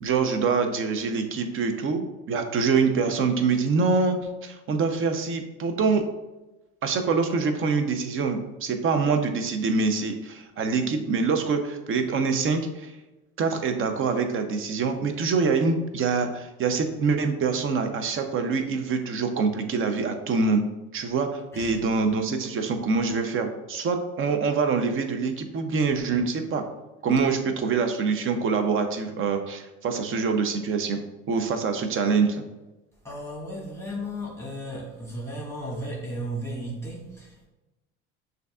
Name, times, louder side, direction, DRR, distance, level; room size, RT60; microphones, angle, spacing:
voice 1, 0.0-6.1 6.8-12.9 13.4-20.6 20.9-26.6 27.0-31.0 31.3-32.4, right 4 dB, 40° right, 6 dB, 0.6 m, -25 dB
voice 2, 33.0-37.5, equal, 10° left, -5 dB, 1.5 m, -35 dB
6.5 x 2.6 x 2.4 m, 1.1 s
supercardioid pair, 80°, 32 cm